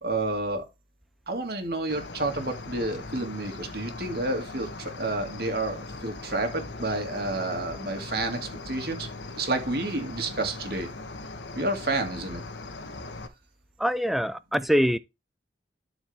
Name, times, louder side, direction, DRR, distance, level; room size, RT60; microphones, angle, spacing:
voice 1, 0.0-0.6 1.3-9.1 9.4-10.9 11.6-12.5, right 2 dB, 60° right, 2.4 m, -30 dB
Cricket, 1.9-13.3, left 3 dB, 85° left, 1.4 m, -40 dB
voice 2, 13.8-15.0, equal, ahead, 0.5 m, -24 dB
12.5 x 5.0 x 3.6 m
head